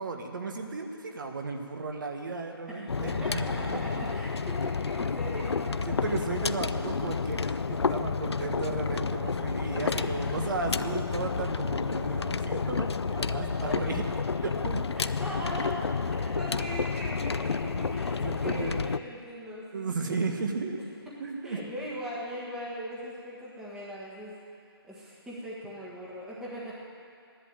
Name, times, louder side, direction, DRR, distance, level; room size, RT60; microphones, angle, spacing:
voice 1, 0.0-4.1 5.8-14.0 14.4-15.0 18.2-18.9 19.7-20.8 21.2-21.6, right 3 dB, 50° right, 4 dB, 1.5 m, -34 dB
voice 2, 2.7-6.2 9.8-10.3 13.4-14.2 15.0-20.2 21.1-21.2 21.4-26.8, equal, 5° right, -6 dB, 1.5 m, -40 dB
sound 1, 2.9-19.0, left 5 dB, 90° left, 0.6 m, -30 dB
13.5 x 11.0 x 8.9 m, 2.4 s
hypercardioid pair, 165°, 13 cm